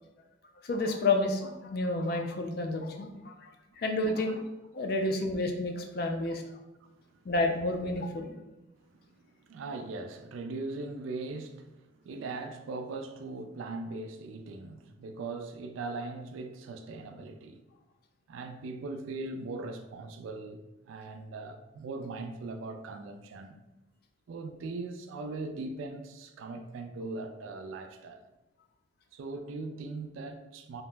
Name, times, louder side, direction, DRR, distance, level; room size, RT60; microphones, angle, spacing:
voice 1, 0.6-4.4 4.7-6.5 7.3-8.3, left 2 dB, 50° left, 0.3 m, -30 dB
voice 2, 9.1-17.6 18.3-23.6 24.3-28.2 29.1-30.8, right 3 dB, 80° right, 0.3 m, -40 dB
2.7 x 2.0 x 3.2 m
head